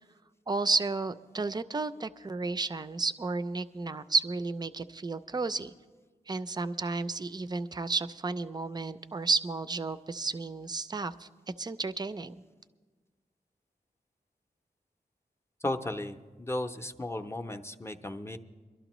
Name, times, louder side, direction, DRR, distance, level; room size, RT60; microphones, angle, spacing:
voice 1, 0.5-5.7 6.3-11.3 11.6-12.3, right 3 dB, 25° right, 12 dB, 0.4 m, -32 dB
voice 2, 15.6-18.4, left 1 dB, 15° left, 5 dB, 0.6 m, -35 dB
23.5 x 12.0 x 3.0 m, 1.4 s
wide cardioid pair, 90°, 16 cm